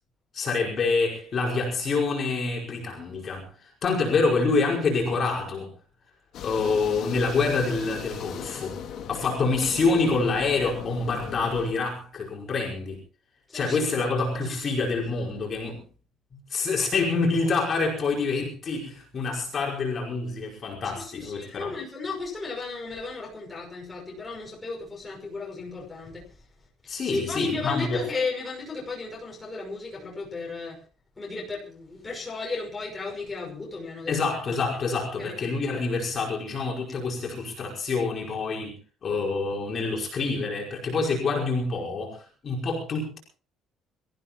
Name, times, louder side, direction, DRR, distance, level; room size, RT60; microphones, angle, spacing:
voice 1, 0.3-3.4 3.8-5.7 6.4-8.8 9.1-13.0 13.5-15.8 16.5-21.7 26.9-28.1 34.1-43.2, left 4 dB, 30° left, -2 dB, 5.3 m, -27 dB
sound 1, 6.3-11.7, left 8 dB, 50° left, 2.5 m, -38 dB
voice 2, 20.8-26.2 27.1-30.8 31.2-34.2 35.2-35.3, left 3 dB, 10° left, -2 dB, 5.8 m, -34 dB
26.5 x 15.5 x 3.1 m, 0.38 s
cardioid pair, 180°, 0 cm